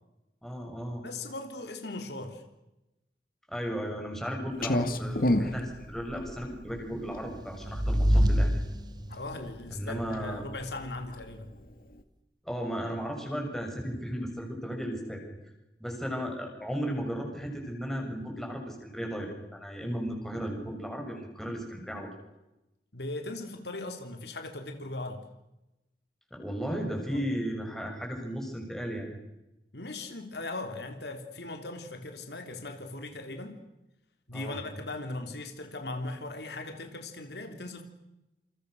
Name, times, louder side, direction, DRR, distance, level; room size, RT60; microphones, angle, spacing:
voice 1, 0.4-1.0 3.5-8.5 9.7-10.4 12.4-15.2 15.8-22.1 26.3-29.1 34.3-34.6, equal, ahead, 1 dB, 6.8 m, -35 dB
voice 2, 1.0-2.4 9.1-11.5 22.9-25.2 27.1-27.2 29.7-33.6 34.3-37.8, left 2 dB, 70° left, 5 dB, 3.5 m, -39 dB
Clock, 4.6-12.0, left 1 dB, 55° left, 2.2 m, -33 dB
sound 1, 7.0-9.4, equal, 25° right, 1.3 m, -26 dB
28.5 x 28.0 x 6.7 m, 0.95 s
head